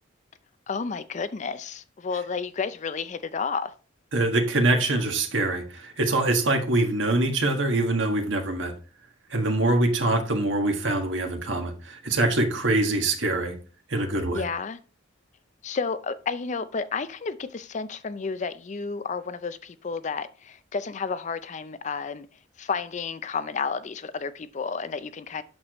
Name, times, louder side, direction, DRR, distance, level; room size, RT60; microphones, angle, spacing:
voice 1, 0.7-3.7 14.3-14.8 15.6-22.3 22.6-25.4, left 5 dB, 35° left, 0.4 m, -31 dB
voice 2, 4.1-8.7 9.3-13.5 13.9-14.4, right 2 dB, 65° right, 1.6 m, -24 dB
8.6 x 6.5 x 3.0 m
head